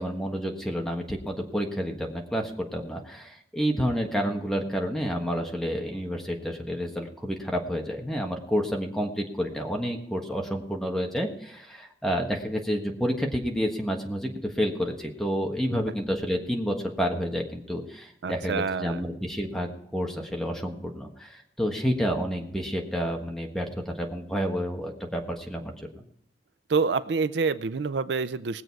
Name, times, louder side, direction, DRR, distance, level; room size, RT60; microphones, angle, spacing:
voice 1, 0.0-26.0, equal, 5° left, 1 dB, 1.5 m, -29 dB
voice 2, 18.2-19.0 26.7-28.6, right 4 dB, 80° right, 14 dB, 0.5 m, -27 dB
19.5 x 7.8 x 4.7 m, 0.73 s
head